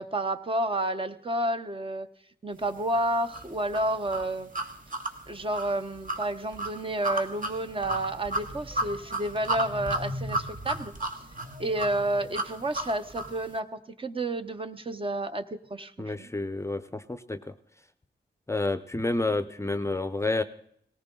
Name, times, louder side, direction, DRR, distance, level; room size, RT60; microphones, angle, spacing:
voice 1, 0.0-2.1 2.4-4.5 5.3-10.9 11.6-16.3, right 1 dB, 30° right, 8 dB, 0.9 m, -30 dB
sound 1, 3.3-13.4, right 2 dB, 50° right, 1.6 m, -33 dB
voice 2, 16.0-17.5 18.5-20.4, left 2 dB, 15° left, 11 dB, 0.6 m, -29 dB
19.0 x 18.0 x 3.8 m, 0.66 s
wide cardioid pair, 160°, 18 cm